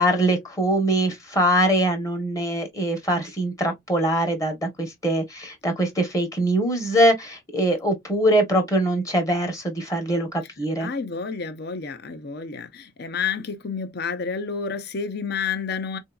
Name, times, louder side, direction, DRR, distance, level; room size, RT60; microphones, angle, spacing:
voice 1, 0.0-10.3 10.6-10.9, right 1 dB, 15° left, 0.9 m, -22 dB
voice 2, 10.8-16.0, left 5 dB, 55° left, 0.6 m, -30 dB
3.7 x 2.7 x 2.2 m
head